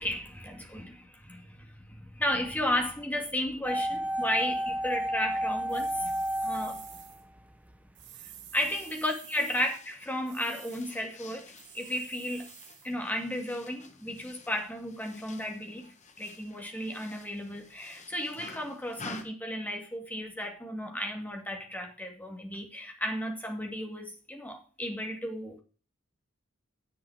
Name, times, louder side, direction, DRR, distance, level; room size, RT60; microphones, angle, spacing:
voice 1, 0.0-6.1 6.4-6.8 8.5-12.5 12.8-15.9 16.2-25.6, left 1 dB, 10° left, 2.3 m, -34 dB
sound 1, 3.6-7.8 8.0-8.1, equal, 5° right, 0.9 m, -31 dB
sound 2, 5.7-7.2 7.9-9.8 10.3-11.0 11.6-12.9, right 11 dB, 55° right, 2.0 m, -50 dB
sound 3, 8.6-19.2, left 3 dB, 35° left, 1.5 m, -50 dB
10.0 x 7.6 x 4.9 m
head